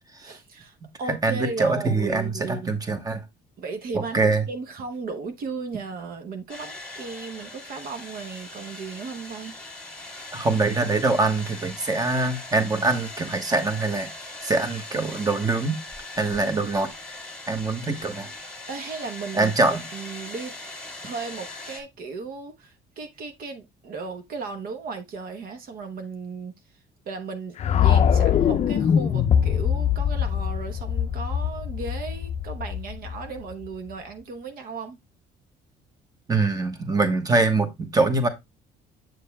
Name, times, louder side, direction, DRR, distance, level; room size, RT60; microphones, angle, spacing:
voice 1, 0.2-2.7 3.6-9.6 18.7-19.5 19.9-20.5 21.0-26.5 27.1-35.0, right 4 dB, 60° right, 1.0 m, -35 dB
voice 2, 1.2-3.2 3.9-4.4 10.3-14.1 14.4-15.8 16.2-16.9 17.5-18.3 19.3-19.8 36.3-38.3, right 3 dB, 20° right, 1.2 m, -23 dB
sound 1, 6.5-21.8, left 2 dB, 5° left, 1.9 m, -40 dB
sound 2, 27.6-33.7, left 8 dB, 40° left, 0.5 m, -23 dB
7.7 x 6.7 x 2.2 m
cardioid pair, 110°, 17 cm